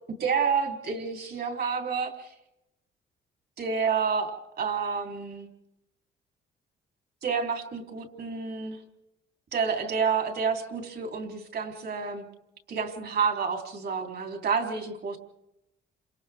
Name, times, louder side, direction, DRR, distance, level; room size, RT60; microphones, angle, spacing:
voice 1, 0.2-2.3 3.6-5.5 7.2-8.8 9.5-12.3 12.7-15.2, right 5 dB, 55° right, 3 dB, 3.6 m, -29 dB
29.0 x 26.5 x 3.6 m, 0.87 s
cardioid pair, 90°, 20 cm